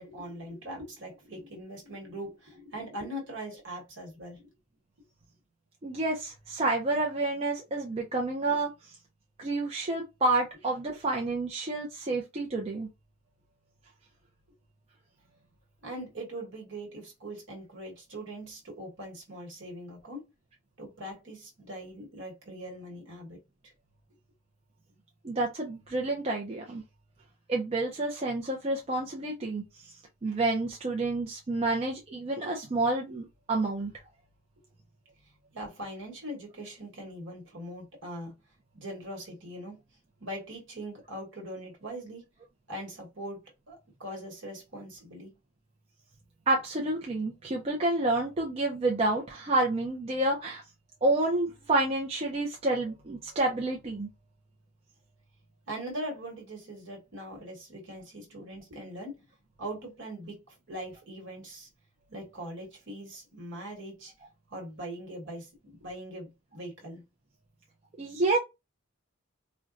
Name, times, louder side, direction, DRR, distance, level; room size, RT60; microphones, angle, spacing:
voice 1, 0.0-4.5 15.8-20.2 20.8-23.7 35.5-38.3 38.7-39.8 40.2-42.3 42.7-45.3 55.7-59.2 59.6-61.7 62.1-64.1 64.5-67.0, right 1 dB, 60° right, 1.2 m, -41 dB
voice 2, 5.8-8.7 9.4-12.9 25.2-26.8 27.5-29.6 30.2-33.9 46.5-50.6 51.0-54.1 68.0-68.4, right 2 dB, 30° right, 0.4 m, -29 dB
3.9 x 2.2 x 2.5 m
head